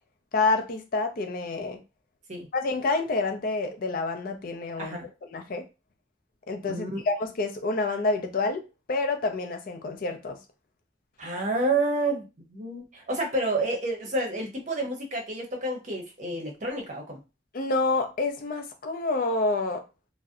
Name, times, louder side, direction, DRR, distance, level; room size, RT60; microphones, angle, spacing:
voice 1, 0.3-1.8 2.5-5.0 5.3-5.6 6.5-8.6 8.9-10.4 17.5-19.8, left 3 dB, 50° left, 5 dB, 0.4 m, -28 dB
voice 2, 4.8-5.1 6.7-7.0 11.2-17.2, right 2 dB, 45° right, 2 dB, 0.7 m, -29 dB
2.6 x 2.0 x 2.4 m, 0.27 s
head